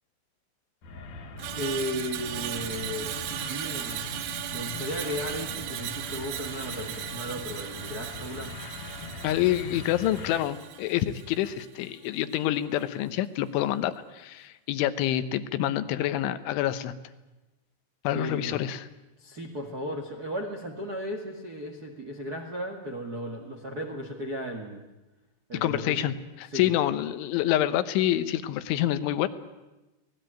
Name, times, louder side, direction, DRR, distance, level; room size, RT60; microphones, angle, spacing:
sound 1, 0.8-10.4, left 3 dB, 55° left, 2.7 m, -41 dB
Screech, 1.4-11.7 12.1-12.3, right 12 dB, 85° right, 3.7 m, -37 dB
voice 1, 1.5-3.1 3.5-4.1 4.5-8.6 18.1-18.6 19.2-24.8 25.5-26.1 26.5-26.7, equal, 65° right, 3 dB, 0.9 m, -35 dB
voice 2, 9.2-16.9 18.1-18.9 25.5-29.3, left 13 dB, 80° left, 12 dB, 3.4 m, -27 dB
26.5 x 19.0 x 9.0 m, 1.1 s
omnidirectional pair, 5.5 m